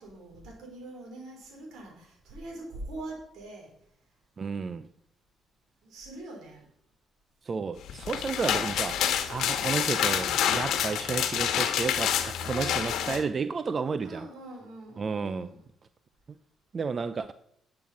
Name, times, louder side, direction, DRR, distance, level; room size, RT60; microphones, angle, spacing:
voice 1, 0.0-3.7 5.8-6.7 12.3-13.0 14.0-15.6, right 2 dB, 80° right, 4.8 m, -43 dB
voice 2, 4.4-4.9 7.4-14.3 15.0-15.5 16.7-17.3, right 5 dB, 40° right, 0.5 m, -32 dB
sound 1, 7.9-13.2, left 9 dB, 80° left, 1.3 m, -28 dB
11.0 x 7.8 x 5.9 m
cardioid pair, 100°, 0 cm